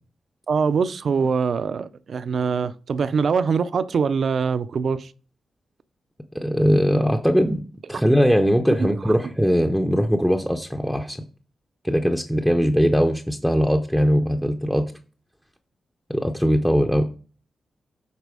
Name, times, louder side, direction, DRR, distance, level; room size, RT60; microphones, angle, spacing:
voice 1, 0.5-5.1 8.8-9.0, right 5 dB, 55° right, 0.4 m, -23 dB
voice 2, 6.3-7.6 7.9-11.2 11.8-14.8 16.1-17.1, equal, ahead, 0.5 m, -20 dB
8.2 x 4.1 x 4.9 m
wide cardioid pair, 140°, 0 cm